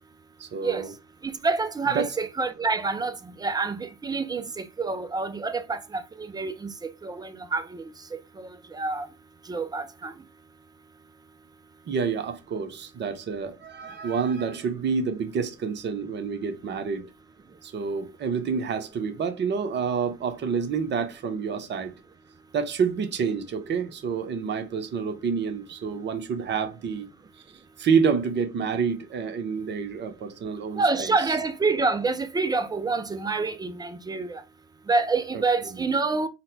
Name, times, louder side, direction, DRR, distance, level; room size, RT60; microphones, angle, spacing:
voice 1, 0.4-0.9 1.9-2.1 11.9-17.1 17.6-21.9 22.5-27.1 27.8-31.1, right 6 dB, 35° right, 0.8 m, -28 dB
voice 2, 1.2-7.9 8.4-9.1 9.5-10.1 30.7-34.4 34.9-36.3, right 3 dB, 10° right, 0.4 m, -27 dB
4.0 x 2.2 x 2.6 m
hypercardioid pair, 70°, 33 cm